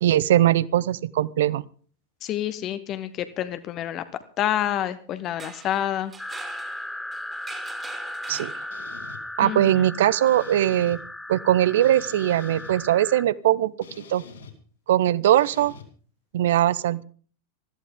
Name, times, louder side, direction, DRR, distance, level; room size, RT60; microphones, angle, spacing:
voice 1, 0.0-1.6 8.3-8.5 9.4-11.0 11.3-13.7 14.1-14.2 14.9-15.7 16.3-17.0, right 12 dB, 55° right, 21 dB, 0.7 m, -20 dB
voice 2, 2.2-4.0 4.4-6.1 9.4-9.7, left 11 dB, 35° left, 12 dB, 1.1 m, -28 dB
sound 1, 5.2-9.1, right 4 dB, 15° right, 2.7 m, -44 dB
sound 2, 6.2-13.2, left 1 dB, 5° left, 0.9 m, -37 dB
sound 3, 8.7-9.2 10.3-11.0 11.8-12.8 13.8-14.5 15.4-15.8, left 5 dB, 70° left, 3.2 m, -45 dB
20.0 x 14.5 x 3.7 m, 0.43 s
figure-of-eight pair, 90°, 0 cm